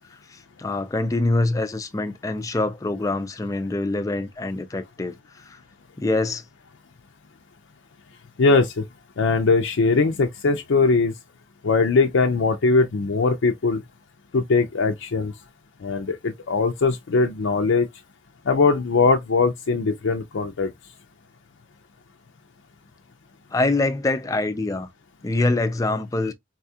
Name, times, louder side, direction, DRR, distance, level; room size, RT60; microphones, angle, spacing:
voice 1, 0.3-5.1 5.5-5.6 6.0-6.4 23.5-24.9 25.2-26.3, left 2 dB, 15° left, 0.3 m, -24 dB
voice 2, 8.4-8.8 9.2-11.1 11.6-13.8 14.3-15.3 15.8-17.9 18.5-20.7, left 4 dB, 75° left, 0.5 m, -20 dB
4.1 x 2.3 x 2.7 m
head